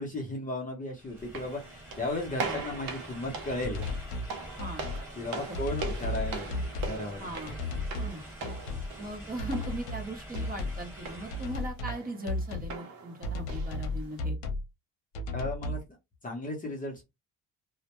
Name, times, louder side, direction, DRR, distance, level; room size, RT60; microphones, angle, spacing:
voice 1, 0.0-3.9 5.2-6.6 6.9-7.3 15.3-15.8 16.2-17.0, left 2 dB, 25° left, 0 dB, 0.7 m, -35 dB
sound 1, 0.9-11.8, equal, 5° right, 1.3 m, -46 dB
sound 2, 1.2-14.2, right 4 dB, 70° right, 0.8 m, -42 dB
sound 3, 3.6-4.3 4.6-5.0 5.5-7.0 7.5-8.2 8.4-8.9 9.4-10.1 10.3-10.8 11.3-12.0 12.3-12.7 13.2-14.6 15.1-15.8, left 2 dB, 85° left, 0.7 m, -34 dB
voice 2, 5.5-5.8 7.2-7.6 8.0-8.2 9.0-14.4, right 1 dB, 25° right, 2 dB, 0.8 m, -39 dB
2.1 x 2.1 x 2.9 m, 0.21 s
cardioid pair, 125°, 36 cm